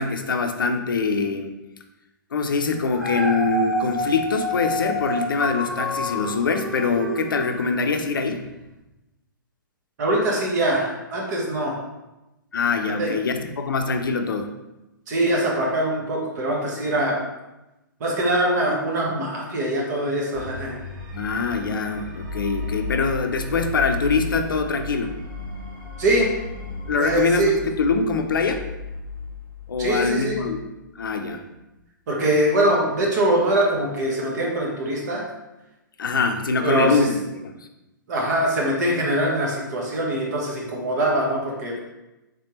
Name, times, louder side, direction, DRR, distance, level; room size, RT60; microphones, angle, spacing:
voice 1, 0.0-1.5 2.3-8.5 12.5-14.5 21.1-25.1 26.9-28.6 29.7-30.6 31.0-31.4 36.0-37.5, left 4 dB, 80° left, 6 dB, 0.5 m, -24 dB
Dog, 2.7-8.1 8.6-8.7, left 1 dB, ahead, 0.6 m, -29 dB
voice 2, 10.0-11.7 13.0-13.1 15.1-17.2 18.0-20.8 26.0-26.3 26.9-27.5 29.8-30.4 32.1-35.2 36.6-37.1 38.1-41.8, right 1 dB, 55° right, -2 dB, 1.2 m, -23 dB
sound 1, 20.3-31.4, left 4 dB, 35° right, 0.9 m, -35 dB
3.6 x 3.3 x 2.9 m, 0.99 s
hypercardioid pair, 130°, 11 cm